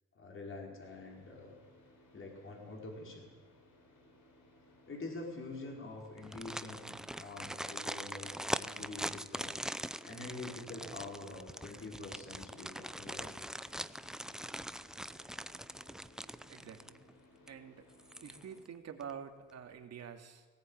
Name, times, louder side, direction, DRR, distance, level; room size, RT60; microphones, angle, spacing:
voice 1, 0.1-1.5 2.1-3.3 4.9-9.6 10.0-13.5, left 2 dB, 45° left, 0 dB, 5.0 m, -46 dB
Car / Idling, 0.8-18.6, left 1 dB, 75° left, 5.4 m, -63 dB
sound 1, 6.2-17.1 17.5-17.6 18.0-18.7 19.0-19.1, right 1 dB, ahead, 0.6 m, -42 dB
voice 2, 16.5-17.0 17.5-17.9 18.2-20.5, right 7 dB, 60° right, 4 dB, 2.7 m, -47 dB
19.0 x 18.0 x 9.0 m, 1.3 s
cardioid pair, 90°, 30 cm